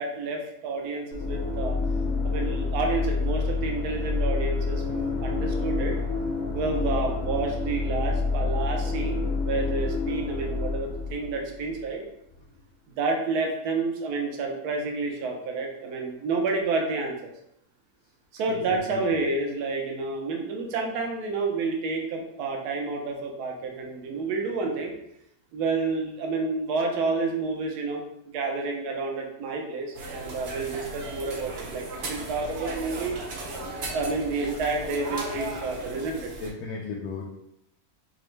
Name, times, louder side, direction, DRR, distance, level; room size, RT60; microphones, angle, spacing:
voice 1, 0.0-1.7 2.2-5.9 6.5-12.0 13.0-17.3 18.3-24.9 25.5-33.1 33.6-36.3, right 3 dB, 75° right, 1 dB, 1.2 m, -29 dB
sound 1, 1.1-11.9, left 3 dB, 50° left, 0.8 m, -28 dB
voice 2, 18.7-19.2 36.4-37.2, left 4 dB, 75° left, -3 dB, 1.1 m, -35 dB
sound 2, 29.9-36.5, right 2 dB, 60° right, 0.7 m, -36 dB
5.4 x 2.0 x 3.1 m, 0.77 s
omnidirectional pair, 1.7 m